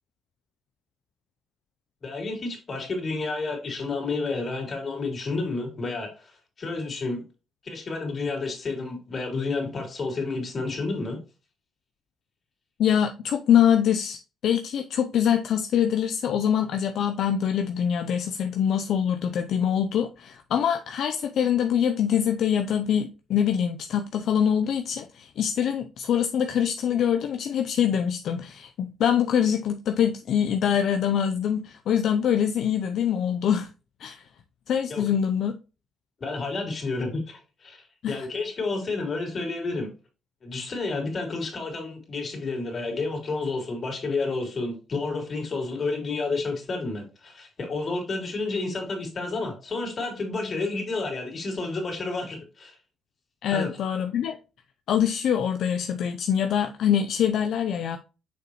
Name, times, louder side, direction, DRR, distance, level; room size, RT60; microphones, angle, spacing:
voice 1, 2.0-6.3 6.6-7.2 7.6-11.2 34.9-35.0 36.2-39.9 40.4-52.8 53.5-53.8, left 3 dB, 45° left, 3.3 m, -30 dB
voice 2, 12.8-33.7 34.0-34.2 34.7-35.6 38.0-38.3 53.4-54.4 54.9-58.0, left 8 dB, 70° left, 0.5 m, -24 dB
6.7 x 5.4 x 3.0 m
cardioid pair, 90°, 0 cm